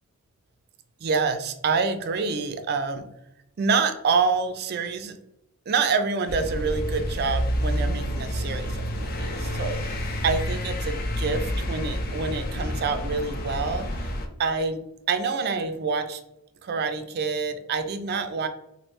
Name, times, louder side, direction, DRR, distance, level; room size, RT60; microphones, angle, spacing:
voice 1, 1.0-3.1 3.6-5.1 5.7-14.1 14.4-14.8 15.1-16.2 16.6-18.5, right 4 dB, 45° right, 8 dB, 0.4 m, -27 dB
sound 1, 6.3-14.3, equal, 40° left, 0.4 m, -29 dB
2.9 x 2.6 x 3.1 m, 0.84 s
head